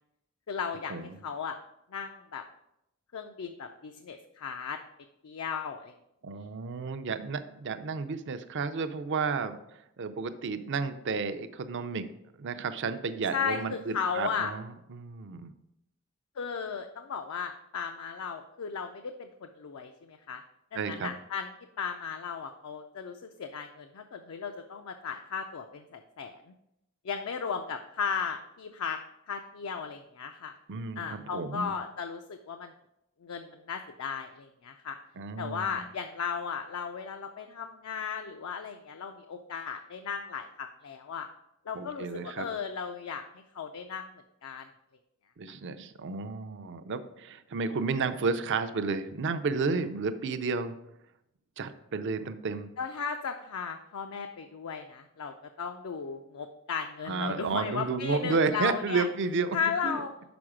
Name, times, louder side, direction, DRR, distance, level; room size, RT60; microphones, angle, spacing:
voice 1, 0.5-1.6 1.9-2.4 3.1-4.8 5.2-5.9 13.3-14.5 16.4-20.4 20.7-21.5 21.8-26.5 27.0-29.0 29.3-30.5 31.0-32.7 33.2-35.0 35.4-41.3 41.7-43.2 43.5-44.1 44.4-44.7 52.8-59.1 59.5-60.1, left 6 dB, 75° left, 6 dB, 0.4 m, -35 dB
voice 2, 6.2-9.6 10.0-12.1 12.4-15.5 20.7-21.1 30.7-31.7 35.2-35.8 41.7-42.5 45.4-50.7 51.6-52.7 57.1-59.6 59.8-60.0, right 4 dB, 55° right, 10 dB, 0.5 m, -32 dB
6.0 x 4.7 x 4.9 m, 0.83 s
head